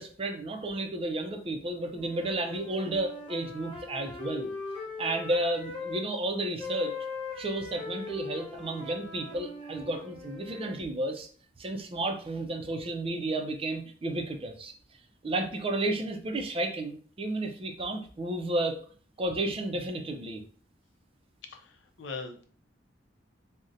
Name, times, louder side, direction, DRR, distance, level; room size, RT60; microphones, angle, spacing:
voice 1, 0.0-4.5 5.0-6.9 7.4-11.3 11.6-14.7 15.2-18.8 19.2-20.4, right 2 dB, 30° right, 5 dB, 0.4 m, -32 dB
sound 1, 1.9-6.1 6.6-10.8, left 3 dB, 30° left, 0.9 m, -40 dB
voice 2, 21.5-22.5, left 4 dB, 80° left, 5 dB, 0.5 m, -41 dB
3.8 x 2.1 x 2.6 m, 0.43 s
head